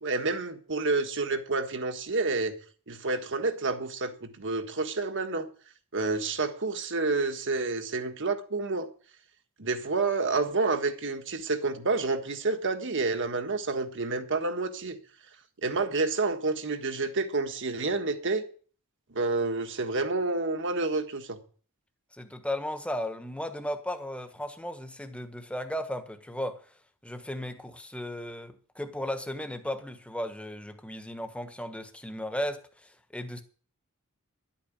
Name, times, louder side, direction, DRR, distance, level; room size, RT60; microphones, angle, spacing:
voice 1, 0.0-2.5 2.9-5.5 5.9-8.9 9.6-15.0 15.6-18.4 19.1-21.4, right 3 dB, 60° right, 1.6 m, -29 dB
voice 2, 22.2-26.6 27.0-33.4, left 1 dB, 5° left, 1.3 m, -35 dB
11.5 x 8.7 x 8.8 m
head